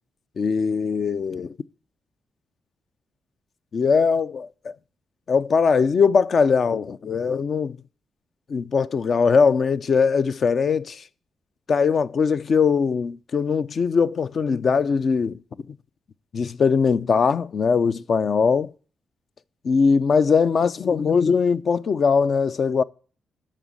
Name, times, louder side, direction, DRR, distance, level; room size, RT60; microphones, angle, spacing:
voice 1, 0.4-1.5 3.7-4.7 5.3-7.8 8.5-11.0 11.7-15.4 16.3-18.7 19.6-22.8, left 5 dB, 55° left, 0.5 m, -21 dB
9.1 x 6.3 x 7.2 m
cardioid pair, 90°, 0 cm